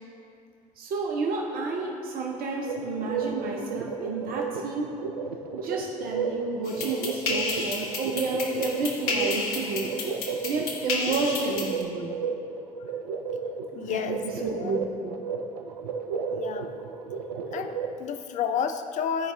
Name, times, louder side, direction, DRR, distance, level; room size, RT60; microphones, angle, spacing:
voice 1, 0.8-4.9 5.5-9.9 10.4-12.1 13.8-15.2, right 3 dB, 50° right, 0 dB, 0.8 m, -30 dB
sound 1, 2.6-18.0, right 5 dB, 75° right, 0.4 m, -34 dB
sound 2, 6.6-11.8, left 3 dB, 70° left, 0.8 m, -32 dB
voice 2, 13.7-14.8 16.3-16.9 17.5-19.3, left 7 dB, 40° left, 8 dB, 0.4 m, -31 dB
11.5 x 4.7 x 2.6 m, 2.4 s
figure-of-eight pair, 55°, 19 cm